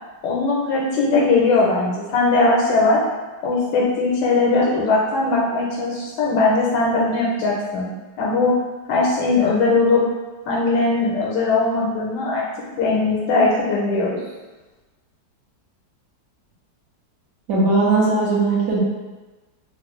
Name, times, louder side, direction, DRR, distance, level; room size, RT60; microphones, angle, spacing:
voice 1, 0.2-3.0 3.4-7.9 8.2-8.5 8.9-10.0 10.5-12.4 12.8-14.2, left 3 dB, 85° left, -3 dB, 1.2 m, -19 dB
voice 2, 17.5-18.8, right 3 dB, 75° right, -5 dB, 1.3 m, -18 dB
3.5 x 2.0 x 3.0 m, 1.2 s
omnidirectional pair, 1.9 m